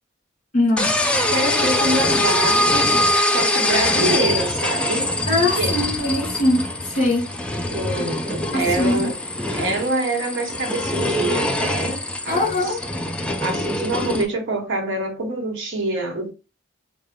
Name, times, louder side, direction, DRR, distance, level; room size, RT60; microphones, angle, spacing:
voice 1, 0.5-1.0 5.3-7.3 8.5-9.1 12.3-12.8, left 2 dB, 35° left, 1.4 m, -21 dB
sound 1, 0.8-14.2, left 1 dB, 5° left, 0.3 m, -23 dB
voice 2, 1.3-5.1 5.5-5.7 7.7-9.2 9.5-12.8 13.4-16.3, right 2 dB, 60° right, 1.0 m, -26 dB
3.7 x 2.1 x 3.5 m
head